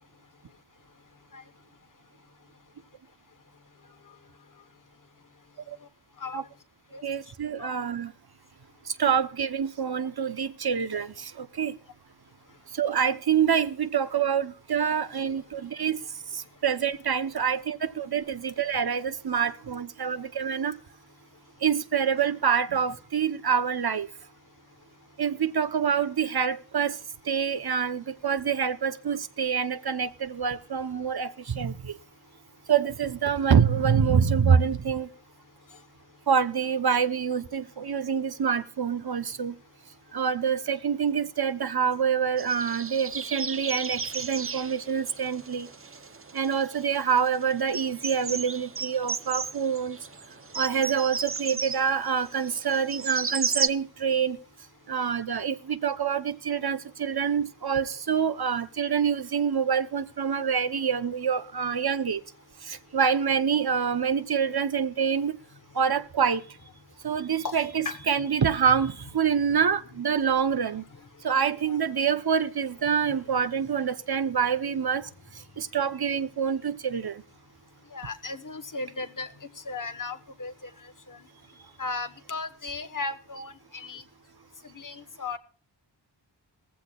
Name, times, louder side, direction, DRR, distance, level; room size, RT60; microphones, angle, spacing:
voice 1, 6.2-6.5 6.9-7.0 7.6-7.7 50.7-50.8 67.4-67.6 67.8-68.3 69.5-69.6 70.9-71.0 71.7-71.8 77.9-81.2 81.8-84.0 84.6-85.4, left 3 dB, 45° left, 1.2 m, -36 dB
voice 2, 7.0-8.1 9.0-11.8 12.7-16.0 16.3-20.8 21.6-24.1 25.2-27.0 27.2-32.0 32.7-35.1 36.3-39.5 40.1-45.7 46.3-50.0 50.6-54.4 54.9-62.2 62.7-65.4 65.7-66.4 67.0-70.8 71.2-75.1 75.6-77.2, right 7 dB, 60° right, 0.9 m, -26 dB
sound 1, 42.4-53.7, right 5 dB, 30° right, 0.6 m, -34 dB
18.5 x 15.0 x 2.4 m
wide cardioid pair, 60°, 43 cm